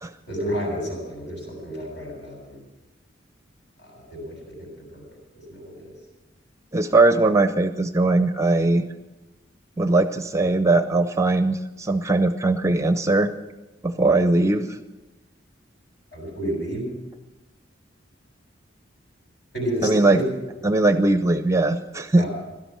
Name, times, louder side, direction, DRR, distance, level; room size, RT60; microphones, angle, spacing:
voice 1, 0.3-2.6 3.8-5.0 5.5-5.9 16.1-16.8 19.5-20.2 22.2-22.3, equal, 65° left, 0 dB, 7.5 m, -31 dB
voice 2, 6.7-8.9 9.8-13.3 13.8-14.8 19.8-20.2 20.6-22.2, right 2 dB, 15° right, 10 dB, 0.6 m, -20 dB
16.5 x 12.5 x 6.2 m, 1.1 s
head